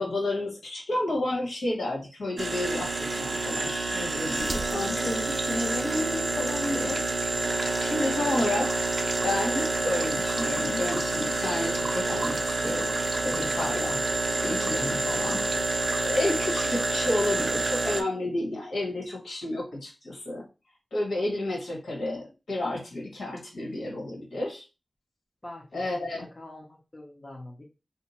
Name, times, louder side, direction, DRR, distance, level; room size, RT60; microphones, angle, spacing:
voice 1, 0.0-7.3 7.8-8.9 9.2-12.9 13.2-14.0 14.4-15.4 16.0-20.4 20.9-24.6 25.7-26.2, left 1 dB, 85° left, -1 dB, 1.4 m, -31 dB
sound 1, 2.4-18.0, right 2 dB, 40° right, 0.5 m, -28 dB
voice 2, 25.4-27.6, left 1 dB, 25° left, -1 dB, 0.8 m, -45 dB
2.7 x 2.2 x 4.1 m, 0.30 s
wide cardioid pair, 80°, 0 cm